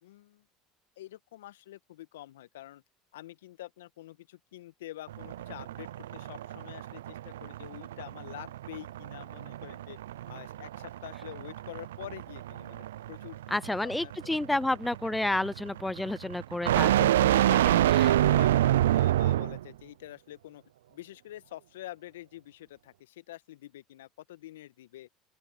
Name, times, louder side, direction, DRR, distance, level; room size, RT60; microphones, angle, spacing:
voice 1, 0.0-0.4 1.0-2.8 3.1-10.0 10.3-14.4 15.0-15.8 17.0-20.6 20.9-25.1, left 14 dB, 75° left, 1.7 m, -46 dB
sound 1, 5.1-19.7, right 13 dB, 75° right, 0.4 m, -28 dB
voice 2, 13.5-18.1, left 1 dB, 10° left, 0.5 m, -31 dB
open air
hypercardioid pair, 70°, 0 cm